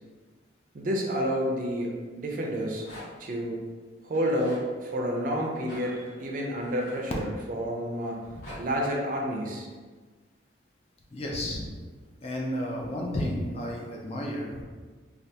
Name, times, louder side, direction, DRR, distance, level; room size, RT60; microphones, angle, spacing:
voice 1, 0.7-2.8 3.2-3.6 4.0-8.2 8.6-9.7, equal, 45° right, 0 dB, 0.4 m, -29 dB
Rattle, 2.5-3.3 4.1-4.7 5.6-7.5 8.1-8.6, left 1 dB, 50° left, 1.3 m, -46 dB
voice 2, 11.1-11.7 12.2-14.6, left 1 dB, 30° left, -2 dB, 0.4 m, -32 dB
3.3 x 2.4 x 2.7 m, 1.4 s
head